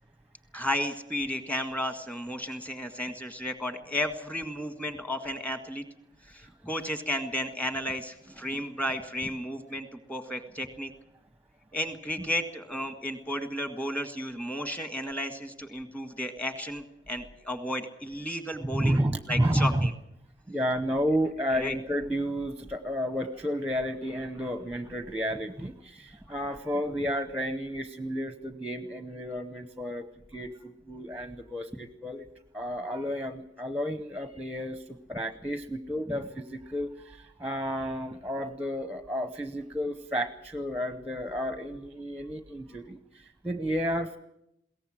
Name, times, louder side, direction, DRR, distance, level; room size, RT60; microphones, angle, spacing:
voice 1, 0.5-5.8 6.3-10.9 11.7-19.0 19.3-19.9 21.6-21.7, left 1 dB, 10° left, 7 dB, 1.7 m, -33 dB
voice 2, 18.7-19.9 20.5-32.3 32.5-44.2, equal, 10° right, 10 dB, 0.9 m, -31 dB
21.5 x 17.5 x 7.6 m, 0.79 s
head